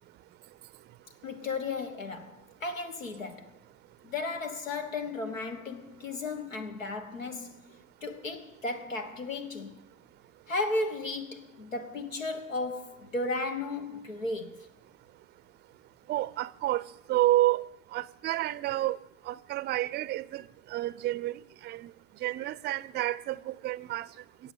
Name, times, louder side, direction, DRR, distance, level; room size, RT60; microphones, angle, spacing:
voice 1, 1.2-3.5 4.0-7.6 8.0-9.8 10.5-14.7, left 3 dB, 85° left, 1.3 m, -34 dB
voice 2, 16.1-16.8 17.1-17.6 17.9-19.0 19.3-20.4 20.7-21.3 21.6-21.9 22.2-24.1, right 15 dB, 25° right, 0.5 m, -29 dB
16.0 x 7.8 x 8.3 m
figure-of-eight pair, 70°, 38 cm